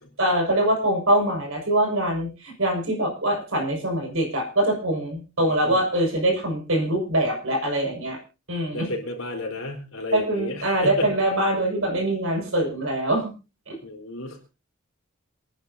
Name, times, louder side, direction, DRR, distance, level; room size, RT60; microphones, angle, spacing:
voice 1, 0.2-8.2 8.5-8.9 10.1-13.3 13.7-13.8, right 1 dB, 65° right, 1 dB, 5.8 m, -23 dB
voice 2, 5.4-5.8 8.7-11.1 13.8-14.4, left 2 dB, 65° left, 2 dB, 4.1 m, -32 dB
27.0 x 10.5 x 2.8 m, 0.31 s
head